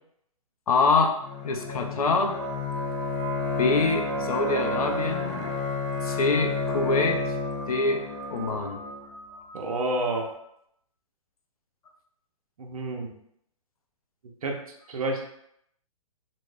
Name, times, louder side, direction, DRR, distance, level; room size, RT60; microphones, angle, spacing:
voice 1, 0.7-2.4 3.6-5.4 6.0-7.2 7.6-8.8, left 3 dB, 80° left, 4 dB, 0.5 m, -25 dB
Bowed string instrument, 1.2-9.0, left 3 dB, 30° left, 0.4 m, -31 dB
sound 1, 2.4-10.3, right 2 dB, 30° right, 0.5 m, -42 dB
voice 2, 9.5-10.3 12.6-13.1 14.4-14.6 14.9-15.3, right 2 dB, 75° right, 1 dB, 0.6 m, -29 dB
2.6 x 2.1 x 3.3 m, 0.73 s
hypercardioid pair, 135°, 19 cm